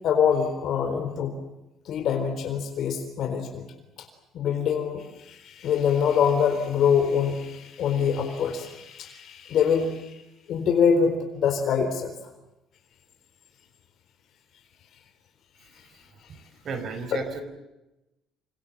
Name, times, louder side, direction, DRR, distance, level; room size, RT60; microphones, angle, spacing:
voice 1, 0.0-1.3 1.8-3.6 4.3-10.1 10.5-12.1 17.1-17.2, left 7 dB, 55° left, 5 dB, 4.1 m, -24 dB
voice 2, 16.6-17.4, right 5 dB, 40° right, 11 dB, 4.5 m, -33 dB
28.5 x 27.0 x 7.6 m, 0.98 s
cardioid pair, 150°, 0 cm